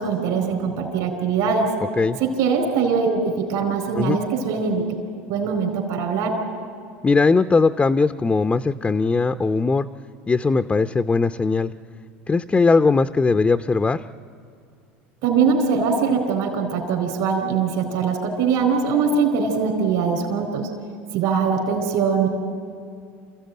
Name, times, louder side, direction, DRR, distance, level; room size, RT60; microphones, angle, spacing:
voice 1, 0.0-1.7 2.2-4.8 5.3-6.4 15.2-20.7 21.1-22.3, right 5 dB, 65° right, 4 dB, 4.3 m, -22 dB
voice 2, 7.0-9.9 10.3-11.7 12.3-14.0, left 4 dB, 20° left, 9 dB, 0.6 m, -19 dB
27.5 x 15.0 x 9.2 m, 2.3 s
hypercardioid pair, 85°, 6 cm